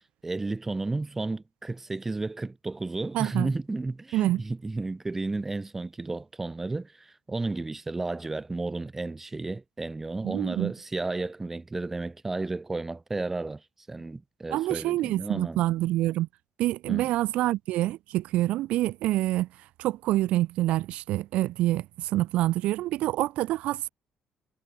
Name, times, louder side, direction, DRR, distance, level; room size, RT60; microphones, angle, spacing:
voice 1, 0.2-13.6 13.9-15.6 16.9-17.1, right 3 dB, 15° right, 1.8 m, -33 dB
voice 2, 3.1-3.5 4.1-4.4 10.2-10.7 14.5-16.3 16.6-19.5 19.8-23.9, right 15 dB, 80° right, 0.8 m, -26 dB
cardioid pair, 145°, 2 cm